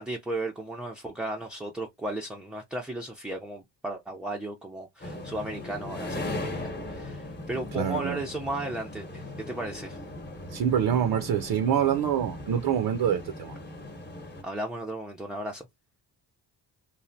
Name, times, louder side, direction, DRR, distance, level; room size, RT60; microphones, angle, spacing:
voice 1, 0.0-10.0 14.4-15.7, right 1 dB, ahead, 0.4 m, -35 dB
sound 1, 5.0-14.4, left 2 dB, 25° left, 0.9 m, -38 dB
voice 2, 7.7-8.2 10.5-13.5, right 9 dB, 60° right, 0.5 m, -26 dB
3.1 x 2.1 x 2.5 m
cardioid pair, 75°, 43 cm